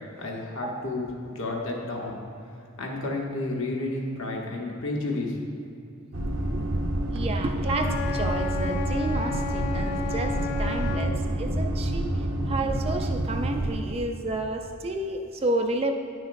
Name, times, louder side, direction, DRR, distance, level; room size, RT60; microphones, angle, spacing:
voice 1, 0.2-2.2 2.8-5.4, left 2 dB, 65° left, -1 dB, 1.0 m, -31 dB
sound 1, 6.1-13.8, right 1 dB, 65° right, 0.8 m, -28 dB
voice 2, 7.1-15.9, right 2 dB, 25° right, 4 dB, 0.3 m, -31 dB
Wind instrument woodwind instrument, 7.6-11.2, left 5 dB, 80° left, 0.4 m, -33 dB
9.9 x 6.3 x 2.6 m, 2.6 s
head